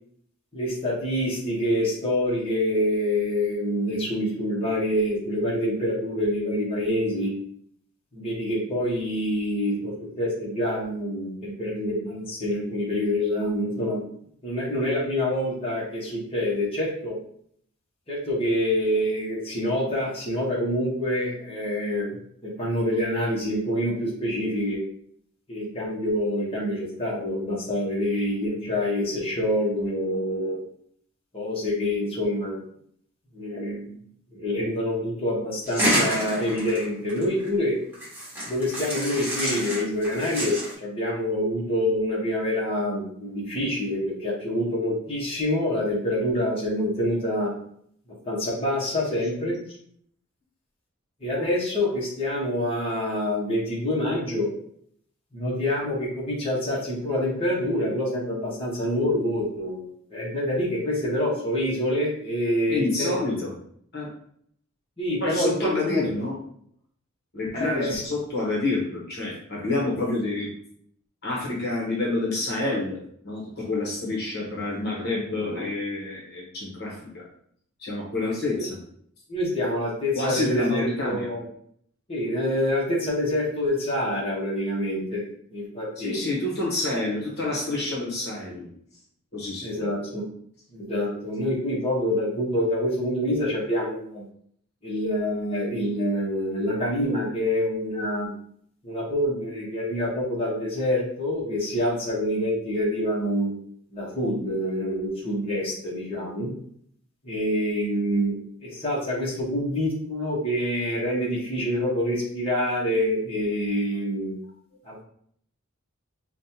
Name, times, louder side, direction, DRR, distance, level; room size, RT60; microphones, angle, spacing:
voice 1, 0.5-7.3 8.1-14.0 14.4-17.2 18.1-22.1 22.4-24.8 25.5-30.6 31.3-32.6 33.3-34.0 34.3-37.8 38.5-47.5 48.2-49.5 51.2-54.5 55.3-59.8 60.1-63.1 65.0-66.0 67.5-68.0 78.6-78.7 79.3-81.4 82.1-85.2 85.5-86.2 89.6-90.3 90.7-94.2 94.8-98.3 98.8-103.5 103.9-106.5 107.2-114.3 114.8-115.0, left 1 dB, 25° left, -6 dB, 1.3 m, -26 dB
sound 1, 35.6-37.5 37.9-40.7, equal, 10° right, 1.6 m, -28 dB
voice 2, 62.7-63.5 63.9-64.1 65.2-66.3 67.3-70.5 71.2-77.3 77.8-78.8 80.1-81.3 86.0-88.7 89.3-89.9, left 2 dB, 50° left, -4 dB, 1.2 m, -28 dB
5.2 x 2.5 x 2.8 m, 0.65 s
head